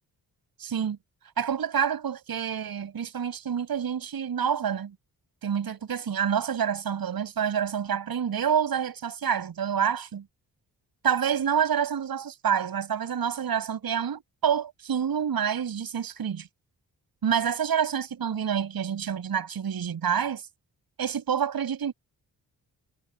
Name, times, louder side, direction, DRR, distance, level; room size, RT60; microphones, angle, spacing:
voice 1, 0.6-1.0 1.4-4.9 5.4-10.2 11.0-16.5 17.2-20.4 21.0-21.9, right 8 dB, 75° right, 7.8 m, -27 dB
cardioid pair, 90°, 36 cm